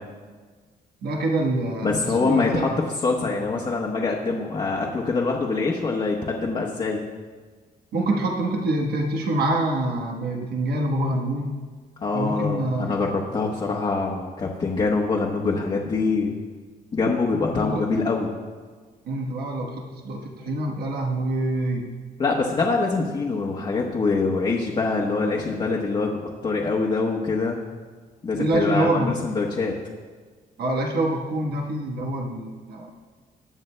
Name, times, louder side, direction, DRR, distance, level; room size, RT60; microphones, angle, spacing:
voice 1, 1.0-2.7 7.9-11.6 12.1-13.0 17.5-17.8 19.0-21.9 28.4-29.2 30.6-32.9, right 1 dB, 90° right, 0 dB, 1.2 m, -26 dB
voice 2, 1.8-7.0 12.0-16.3 16.9-18.3 22.2-27.6 28.2-29.7, left 3 dB, 30° left, -2 dB, 1.0 m, -24 dB
21.0 x 9.3 x 2.2 m, 1.5 s
wide cardioid pair, 165°, 16 cm